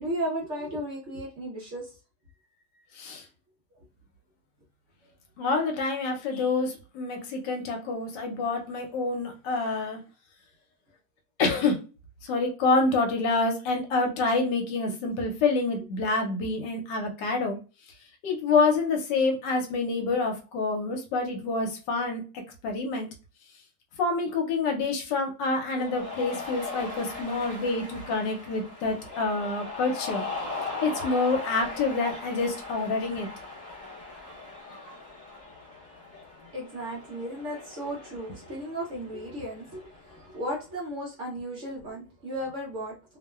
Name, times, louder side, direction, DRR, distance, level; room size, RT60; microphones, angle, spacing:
voice 1, 0.0-1.9 14.9-15.0 36.5-43.2, right 1 dB, 55° right, -3 dB, 0.9 m, -35 dB
voice 2, 5.4-10.0 11.4-11.8 12.2-17.6 18.2-22.2 22.6-23.1 24.0-30.2 30.8-33.3, left 3 dB, 80° left, 3 dB, 1.2 m, -27 dB
Cheering, 25.7-40.5, left 3 dB, 45° left, 0.4 m, -39 dB
2.9 x 2.1 x 2.2 m, 0.33 s
omnidirectional pair, 1.9 m